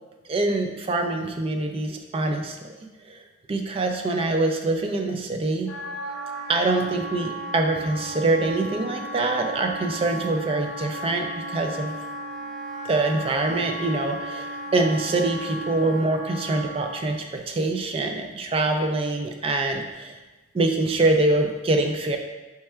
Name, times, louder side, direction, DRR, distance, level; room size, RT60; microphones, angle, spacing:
voice 1, 0.3-2.7 3.0-3.2 3.5-5.7 6.5-11.9 12.8-20.2 20.5-22.2, right 2 dB, 30° right, 4 dB, 0.3 m, -24 dB
Wind instrument woodwind instrument, 5.7-17.0, right 1 dB, ahead, 0.7 m, -35 dB
4.5 x 4.3 x 2.3 m, 1.2 s
head